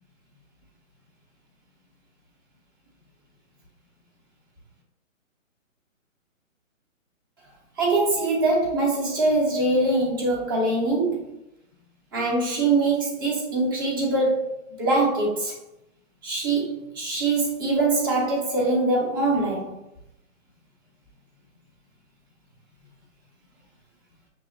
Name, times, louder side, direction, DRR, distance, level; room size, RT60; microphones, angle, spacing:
voice 1, 7.8-11.3 12.1-15.6 16.2-19.8, right 2 dB, 15° right, -2 dB, 0.6 m, -23 dB
5.9 x 2.8 x 2.6 m, 0.86 s
hypercardioid pair, 145°, 40 cm